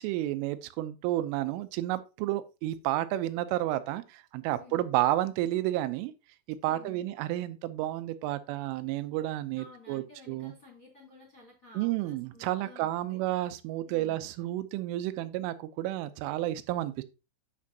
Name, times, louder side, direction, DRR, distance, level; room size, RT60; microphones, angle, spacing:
voice 1, 0.0-6.1 6.5-10.5 11.8-17.0, right 15 dB, 85° right, 3.1 m, -31 dB
voice 2, 4.5-4.8 6.7-7.1 9.5-13.2 13.8-14.2, left 3 dB, 25° left, 3.0 m, -53 dB
8.4 x 7.4 x 2.8 m
omnidirectional pair, 5.7 m